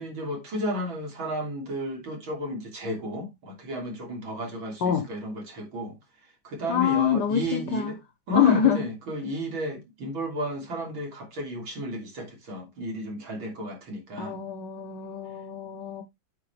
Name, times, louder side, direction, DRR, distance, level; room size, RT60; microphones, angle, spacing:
voice 1, 0.0-6.0 6.4-8.0 8.3-14.4, equal, 85° right, 3.9 m, -33 dB
voice 2, 6.7-7.9 8.3-8.9 14.2-16.0, left 9 dB, 65° left, 1.3 m, -25 dB
8.9 x 6.6 x 3.4 m
omnidirectional pair, 2.1 m